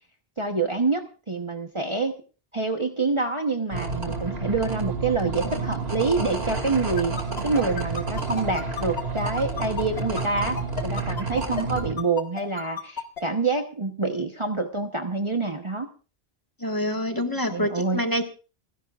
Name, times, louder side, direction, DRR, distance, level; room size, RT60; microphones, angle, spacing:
voice 1, 0.4-2.1 2.5-7.1 7.4-15.9 17.5-18.0, right 3 dB, 30° right, 4 dB, 1.1 m, -26 dB
sound 1, 3.7-11.9, right 4 dB, 75° right, 2.9 m, -30 dB
sound 2, 7.0-13.2, left 5 dB, 80° left, 1.9 m, -32 dB
voice 2, 16.6-18.2, equal, 20° left, 3 dB, 1.8 m, -26 dB
29.0 x 11.0 x 2.5 m, 0.36 s
omnidirectional pair, 1.1 m